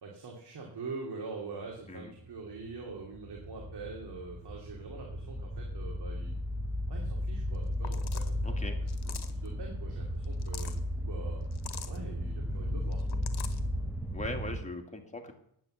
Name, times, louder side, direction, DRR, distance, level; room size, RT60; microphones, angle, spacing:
voice 1, 0.0-6.3 6.9-11.4 11.8-13.2, right 4 dB, 60° right, -1 dB, 2.7 m, -44 dB
sound 1, 1.9-14.6, equal, 5° right, 0.9 m, -35 dB
sound 2, 7.5-7.6 7.8-8.3 8.9-9.5 10.2-10.8 11.5-12.0 12.9-13.6, left 8 dB, 55° left, 1.3 m, -44 dB
voice 2, 8.4-8.8 14.1-15.3, left 2 dB, 15° left, 3 dB, 2.1 m, -40 dB
9.7 x 9.2 x 7.2 m, 0.72 s
cardioid pair, 105°, 45 cm